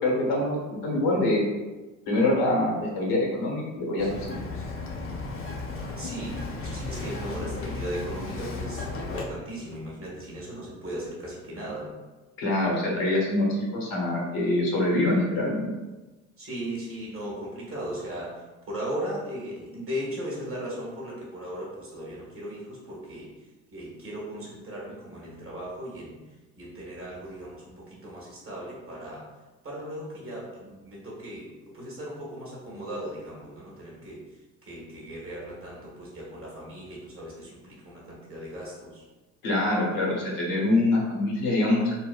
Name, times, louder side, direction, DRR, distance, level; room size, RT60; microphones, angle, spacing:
voice 1, 0.0-1.4 2.1-4.2 12.4-15.7 39.4-41.9, left 1 dB, 60° left, -2 dB, 1.1 m, -25 dB
Bird vocalization bird call bird song, 4.0-9.2, left 3 dB, 35° left, 0.6 m, -34 dB
voice 2, 6.0-12.0 16.4-23.3 23.7-26.2 26.6-29.3 29.6-39.0, equal, 35° right, -5 dB, 1.4 m, -37 dB
4.1 x 2.0 x 2.3 m, 1.2 s
hypercardioid pair, 60°, 39 cm